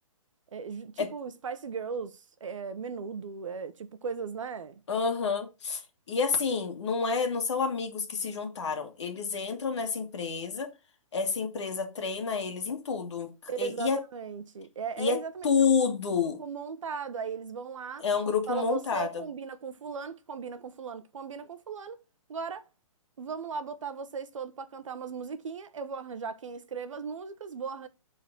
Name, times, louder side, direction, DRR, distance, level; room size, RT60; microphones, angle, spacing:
voice 1, 0.5-4.8 13.5-15.5 16.4-18.0 18.5-22.0 22.3-22.7 23.2-27.9, right 5 dB, 65° right, 0.9 m, -37 dB
voice 2, 4.9-5.8 6.1-10.7 11.1-14.0 15.0-16.4 18.0-19.2, left 5 dB, 55° left, 2.0 m, -29 dB
9.6 x 4.0 x 3.9 m
hypercardioid pair, 175°, 18 cm